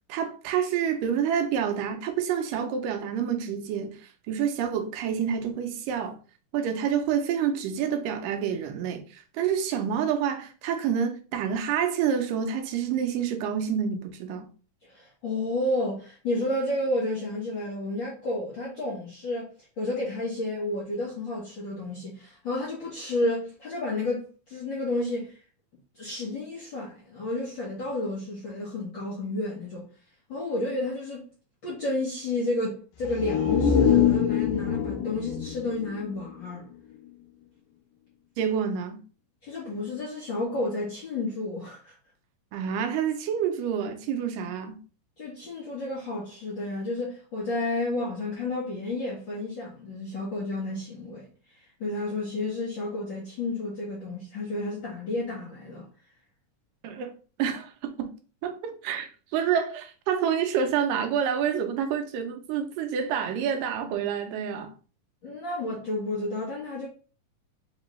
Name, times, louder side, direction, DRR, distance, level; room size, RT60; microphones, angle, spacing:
voice 1, 0.1-6.2 6.5-14.5 38.4-39.0 42.5-44.8 56.8-57.1 57.4-58.1 58.4-64.7, right 8 dB, 85° right, 2.3 m, -28 dB
voice 2, 14.8-19.5 19.8-25.4 25.9-29.8 30.3-31.2 31.6-36.6 39.4-41.9 45.2-55.9 65.2-66.9, left 2 dB, 60° left, 1.2 m, -31 dB
sound 1, 33.0-36.7 37.1-37.2, left 8 dB, 75° left, 2.0 m, -25 dB
5.2 x 3.2 x 3.1 m
omnidirectional pair, 3.8 m